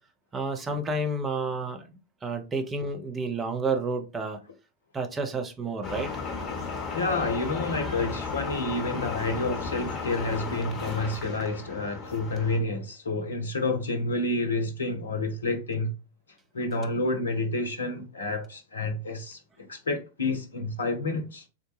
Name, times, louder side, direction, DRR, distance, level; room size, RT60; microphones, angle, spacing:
voice 1, 0.3-1.8 2.2-4.4 4.9-6.1, right 3 dB, 15° right, 0.6 m, -30 dB
sound 1, 5.8-12.6, left 4 dB, 25° left, 1.1 m, -34 dB
voice 2, 6.9-15.9 16.5-21.4, left 2 dB, 70° left, 0.6 m, -29 dB
3.7 x 2.1 x 3.1 m
figure-of-eight pair, 90°, 0 cm